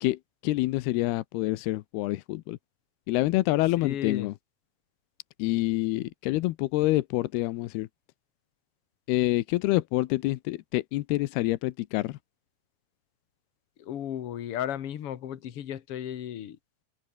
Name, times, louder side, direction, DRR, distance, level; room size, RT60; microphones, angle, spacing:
voice 1, 0.0-2.6 3.1-4.3 5.4-7.9 9.1-12.2, left 18 dB, 85° left, 2.8 m, -27 dB
voice 2, 3.8-4.3 13.8-16.6, left 10 dB, 55° left, 1.7 m, -34 dB
omnidirectional pair, 4.5 m